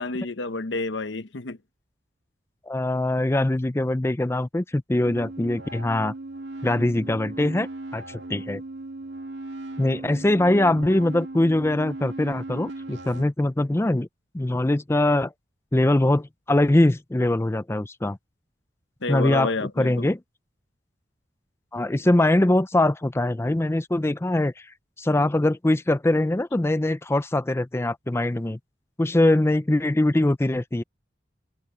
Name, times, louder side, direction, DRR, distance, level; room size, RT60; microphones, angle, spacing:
voice 1, 0.0-1.6 19.0-20.1, left 3 dB, 85° left, 1.0 m, -29 dB
voice 2, 2.7-6.1 6.6-7.7 7.9-8.6 9.8-14.1 14.3-15.3 15.7-18.2 19.1-20.2 21.7-24.5 25.0-28.6 29.0-30.8, left 1 dB, 15° left, 0.5 m, -22 dB
sound 1, 5.0-13.3, right 2 dB, 75° right, 2.1 m, -37 dB
head